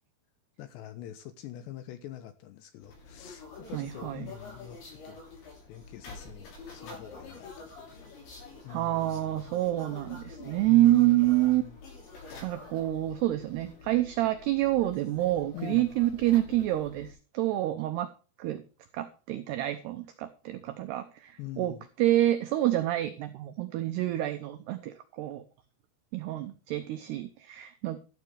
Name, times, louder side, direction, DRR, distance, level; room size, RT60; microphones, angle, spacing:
voice 1, 0.6-4.8 5.0-5.3 5.7-8.0 8.6-9.4 10.7-11.8 15.5-15.9 21.4-21.9, left 12 dB, 75° left, 2.7 m, -44 dB
sound 1, 2.8-17.1, left 3 dB, 60° left, 8.8 m, -47 dB
voice 2, 3.7-4.3 8.7-11.6 12.4-18.1 18.4-18.6 18.9-25.4 26.1-28.0, right 15 dB, 90° right, 2.3 m, -27 dB
13.0 x 11.5 x 3.4 m
omnidirectional pair, 5.9 m